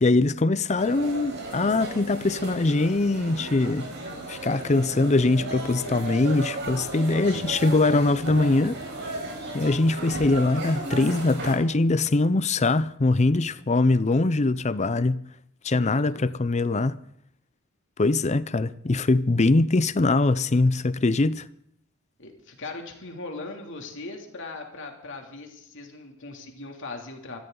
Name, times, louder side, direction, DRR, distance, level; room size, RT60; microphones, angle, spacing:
voice 1, 0.0-3.9 4.3-8.8 9.5-15.2 15.6-17.0 18.0-21.4, left 2 dB, 30° left, 0.6 m, -22 dB
sound 1, 0.8-11.6, right 2 dB, 55° right, 4.9 m, -35 dB
voice 2, 15.9-16.3 22.2-27.4, left 3 dB, 60° left, 2.8 m, -39 dB
26.0 x 13.5 x 3.9 m
head